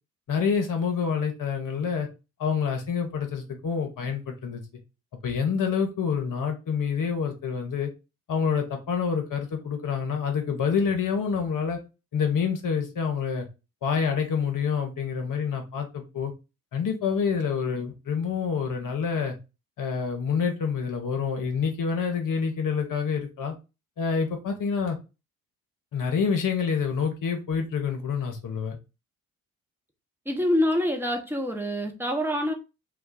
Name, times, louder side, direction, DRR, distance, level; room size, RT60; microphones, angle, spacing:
voice 1, 0.3-2.1 2.4-4.6 5.2-7.9 8.3-11.8 12.1-13.5 13.8-16.3 16.7-19.4 19.8-23.5 24.0-25.0 25.9-28.8, left 6 dB, 50° left, 1.0 m, -27 dB
voice 2, 30.3-32.5, left 1 dB, 5° right, 0.9 m, -26 dB
2.4 x 2.2 x 3.9 m
hypercardioid pair, 45°, 43 cm